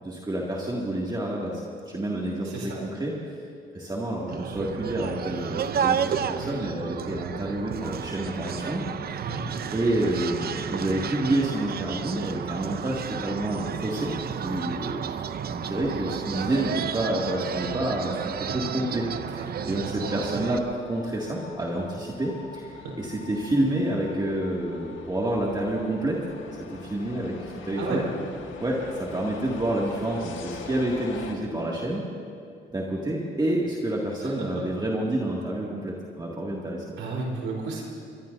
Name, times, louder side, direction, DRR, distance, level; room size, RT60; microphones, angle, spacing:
voice 1, 0.0-3.1 3.7-8.9 9.7-14.1 14.4-26.3 26.6-28.0 28.6-32.1 32.7-36.8, right 1 dB, 20° right, -4 dB, 2.3 m, -29 dB
voice 2, 2.4-2.8 9.2-9.4 27.8-28.0 34.2-34.5 37.0-37.8, right 4 dB, 85° right, -2 dB, 4.3 m, -32 dB
sound 1, 4.3-20.6, right 8 dB, 50° right, 0.7 m, -32 dB
sound 2, 19.9-31.3, left 5 dB, 75° left, 1.7 m, -44 dB
22.5 x 22.5 x 2.7 m, 2.4 s
cardioid pair, 90°, 20 cm